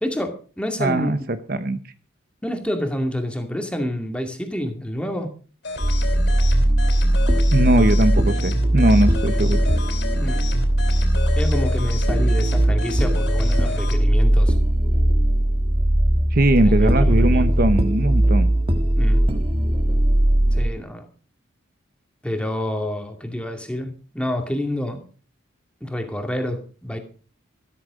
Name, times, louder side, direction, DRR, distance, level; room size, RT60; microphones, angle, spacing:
voice 1, 0.0-1.1 2.4-5.3 10.2-10.4 11.4-14.5 16.6-17.4 19.0-19.2 20.5-21.1 22.2-25.0 25.8-27.0, left 1 dB, 5° left, 4 dB, 2.4 m, -28 dB
voice 2, 0.8-1.8 7.5-9.6 16.3-18.5, right 1 dB, 45° right, 10 dB, 1.0 m, -20 dB
sound 1, 5.6-14.0, left 3 dB, 55° left, 3.7 m, -33 dB
sound 2, 5.8-20.7, right 1 dB, 25° right, 1.8 m, -19 dB
14.0 x 13.5 x 5.2 m, 0.38 s
head